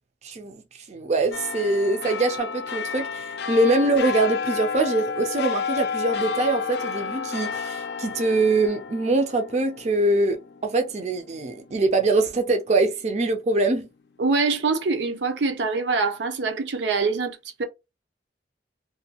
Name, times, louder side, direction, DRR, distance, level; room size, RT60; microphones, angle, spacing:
voice 1, 0.2-0.6 0.9-13.9, right 2 dB, 40° right, 0.4 m, -23 dB
sound 1, 1.3-12.1 12.5-12.6, left 6 dB, 70° left, 0.4 m, -31 dB
voice 2, 14.2-17.6, right 4 dB, 85° right, 0.6 m, -24 dB
2.6 x 2.2 x 2.8 m
head